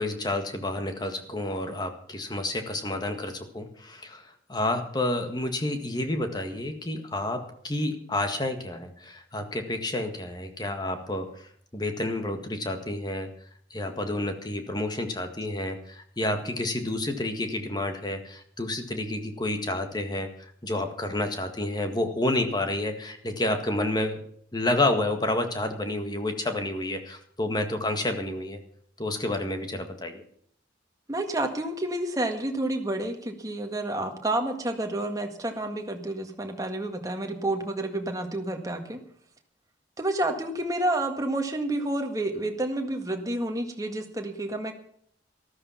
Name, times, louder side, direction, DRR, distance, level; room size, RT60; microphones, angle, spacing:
voice 1, 0.0-13.3 13.7-24.2 24.5-28.6 29.0-30.2, left 1 dB, 20° left, 6 dB, 1.7 m, -30 dB
voice 2, 31.1-39.0 40.0-44.7, right 1 dB, 20° right, 4 dB, 1.8 m, -29 dB
13.5 x 13.5 x 5.7 m, 0.63 s
head